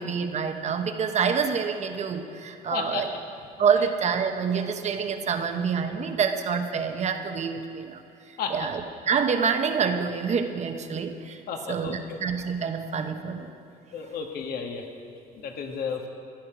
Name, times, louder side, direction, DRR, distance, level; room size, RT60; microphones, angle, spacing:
voice 1, 0.0-3.1 3.6-8.0 8.3-11.4 11.7-13.5, right 6 dB, 40° right, 6 dB, 0.9 m, -27 dB
voice 2, 2.7-3.1 8.4-8.7 11.5-12.2 13.9-14.9 15.3-16.1, left 6 dB, 65° left, 3 dB, 1.5 m, -32 dB
15.0 x 10.0 x 5.0 m, 2.6 s
cardioid pair, 110°, 17 cm